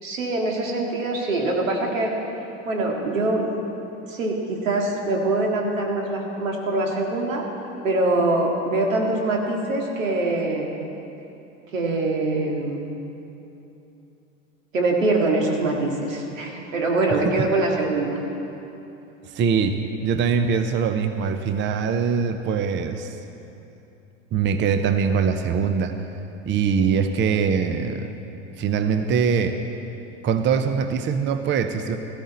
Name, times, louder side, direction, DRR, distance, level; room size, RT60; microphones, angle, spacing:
voice 1, 0.0-2.1 2.7-3.5 4.1-7.4 7.8-10.7 11.7-12.9 14.7-18.2, right 2 dB, 85° right, 0 dB, 2.1 m, -23 dB
voice 2, 17.1-17.5 19.3-23.2 24.3-25.9 26.5-28.1 28.6-29.6 30.2-32.0, right 6 dB, 30° right, 8 dB, 0.7 m, -22 dB
14.0 x 13.5 x 4.2 m, 2.9 s
hypercardioid pair, 95°, 38 cm